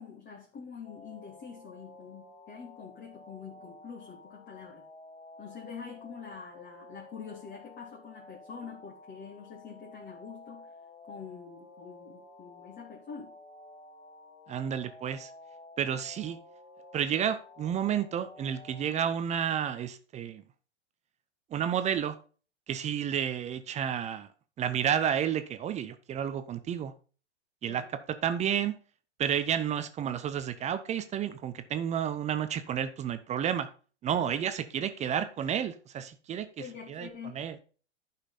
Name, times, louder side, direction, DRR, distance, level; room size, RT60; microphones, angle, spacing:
voice 1, 0.0-4.8 5.4-10.7 11.1-13.3 27.7-27.9 34.1-34.4 36.6-37.4, left 6 dB, 25° left, -2 dB, 2.4 m, -45 dB
sound 1, 0.8-19.0, left 2 dB, 90° left, 2.3 m, -52 dB
voice 2, 14.5-15.3 15.8-16.4 16.9-20.4 21.5-22.2 22.7-24.3 24.6-26.9 27.6-27.8 28.2-28.8 29.2-33.7 34.0-37.1 37.3-37.6, right 9 dB, 20° right, 11 dB, 0.7 m, -31 dB
11.0 x 5.7 x 4.1 m, 0.38 s
hypercardioid pair, 105°, 36 cm